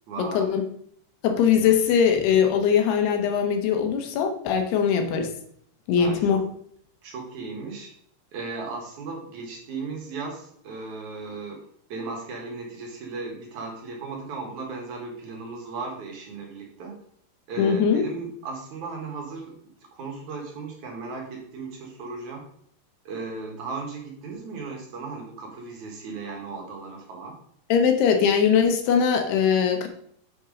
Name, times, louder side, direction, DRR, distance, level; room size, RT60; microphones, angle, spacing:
voice 1, 0.1-0.5 4.9-5.1 6.0-6.4 7.0-7.9 8.3-11.6 11.9-17.0 17.5-19.5 19.9-22.4 23.1-27.4, right 4 dB, 60° right, 1 dB, 2.3 m, -36 dB
voice 2, 1.2-5.3 5.9-6.4 17.6-18.0 27.7-29.9, left 7 dB, 75° left, 5 dB, 3.0 m, -21 dB
8.2 x 4.5 x 5.1 m, 0.65 s
omnidirectional pair, 4.9 m